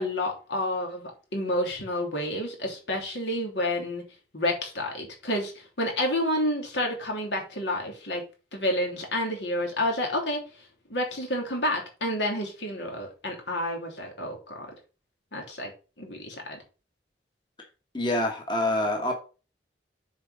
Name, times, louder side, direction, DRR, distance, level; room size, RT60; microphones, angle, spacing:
voice 1, 0.0-4.0 4.3-5.5 5.8-8.2 8.5-10.4 10.9-14.4 15.3-15.7 16.0-16.6, left 1 dB, 80° left, 3.1 m, -29 dB
voice 2, 17.9-19.1, left 1 dB, 25° left, 1.4 m, -26 dB
7.4 x 4.6 x 5.5 m
head